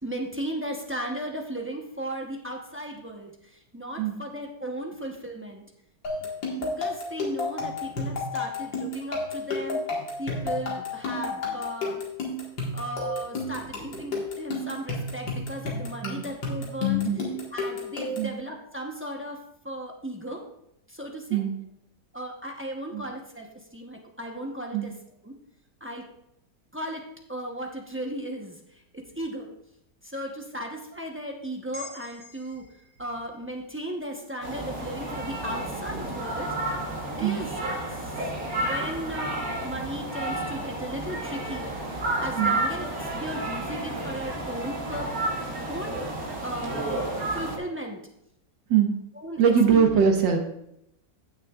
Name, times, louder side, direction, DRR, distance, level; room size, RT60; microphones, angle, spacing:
voice 1, 0.0-3.3 3.7-5.6 6.6-9.8 10.2-11.9 12.7-17.1 17.5-19.4 19.6-20.4 20.9-21.4 22.1-24.9 25.2-25.3 25.8-26.0 26.7-27.0 27.3-28.6 29.2-29.5 30.0-32.6 33.0-36.7 37.2-37.5 38.6-45.1 45.7-46.0 46.4-48.0 49.2-49.4 49.7-49.9, right 1 dB, 15° right, 0 dB, 0.4 m, -36 dB
sound 1, 6.0-18.4, left 3 dB, 85° left, 2.5 m, -31 dB
sound 2, 31.7-36.2 36.6-36.8, left 2 dB, 35° right, 2.1 m, -51 dB
sound 3, 34.4-47.6, right 2 dB, 50° right, 1.7 m, -31 dB
voice 2, 49.4-50.4, right 7 dB, 80° right, 2 dB, 1.9 m, -22 dB
16.0 x 6.4 x 2.4 m, 0.78 s
omnidirectional pair, 2.0 m